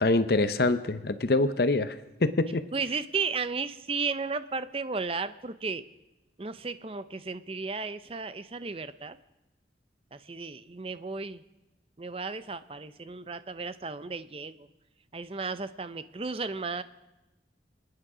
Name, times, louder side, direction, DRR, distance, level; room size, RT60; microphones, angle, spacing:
voice 1, 0.0-1.9 2.2-2.6, left 2 dB, 55° left, 12 dB, 0.7 m, -24 dB
voice 2, 2.7-5.8 6.4-9.2 10.1-11.4 12.0-14.7 15.1-16.8, right 4 dB, 30° right, 13 dB, 0.6 m, -34 dB
27.5 x 9.6 x 4.9 m, 1.0 s
head